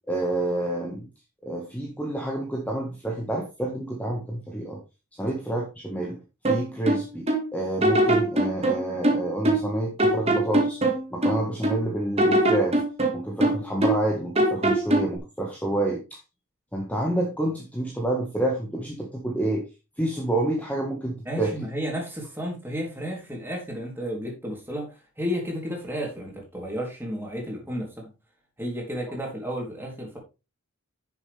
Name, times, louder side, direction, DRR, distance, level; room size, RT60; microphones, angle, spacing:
voice 1, 0.1-1.1 1.4-4.8 5.1-6.2 6.5-10.8 11.1-12.8 13.1-16.2 16.7-19.6 20.0-21.5, right 1 dB, 5° left, -1 dB, 1.7 m, -28 dB
sound 1, 6.4-7.5 7.8-9.7 10.0-11.8 12.2-14.1 14.4-15.2, right 1 dB, 30° right, 1.9 m, -22 dB
voice 2, 21.3-28.1 28.6-30.2, equal, 10° right, 0 dB, 3.5 m, -32 dB
10.5 x 7.1 x 3.5 m, 0.27 s
head